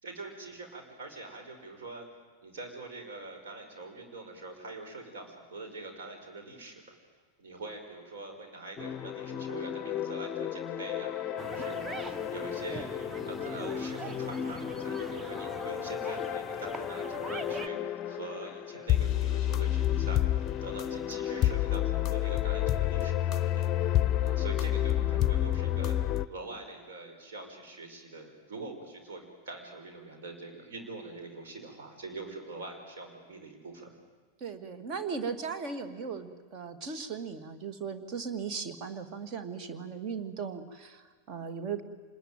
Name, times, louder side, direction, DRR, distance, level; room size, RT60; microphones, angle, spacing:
voice 1, 0.0-2.1 2.4-6.9 7.4-12.9 13.2-26.0 26.3-33.9, right 3 dB, 60° right, 4 dB, 5.5 m, -44 dB
sound 1, 8.8-26.3, left 12 dB, 30° left, 0.7 m, -30 dB
sound 2, 11.4-17.7, right 3 dB, 15° right, 1.0 m, -42 dB
voice 2, 34.4-41.8, right 5 dB, 35° right, 9 dB, 2.2 m, -37 dB
26.5 x 20.5 x 9.2 m, 1.5 s
figure-of-eight pair, 90°, 0 cm